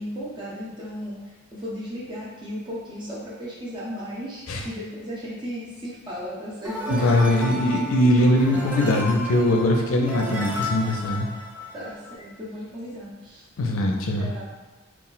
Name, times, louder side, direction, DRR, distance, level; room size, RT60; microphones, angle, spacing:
voice 1, 0.0-7.3 8.0-8.2 11.7-13.5 14.2-14.4, equal, 20° right, -6 dB, 0.7 m, -35 dB
sound 1, 6.6-12.1, left 1 dB, 5° right, 0.3 m, -33 dB
voice 2, 7.0-11.3 13.6-14.3, left 1 dB, 75° left, 2 dB, 0.5 m, -21 dB
2.3 x 2.1 x 3.9 m, 1.3 s
head